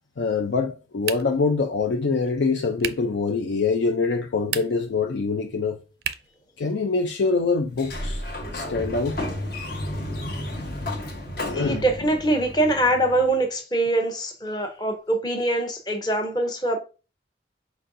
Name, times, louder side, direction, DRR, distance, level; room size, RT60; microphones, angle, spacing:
voice 1, 0.2-5.8 6.6-8.2 8.5-9.2 11.4-11.8, left 4 dB, 85° left, 0.5 m, -24 dB
sound 1, 1.0-1.5 2.8-3.2 4.4-4.9 6.0-6.4, right 9 dB, 65° right, 0.4 m, -32 dB
Sliding door, 7.7-13.4, left 1 dB, 60° left, 1.0 m, -32 dB
voice 2, 11.5-16.8, right 1 dB, 25° left, 0.7 m, -23 dB
4.6 x 4.0 x 2.6 m
head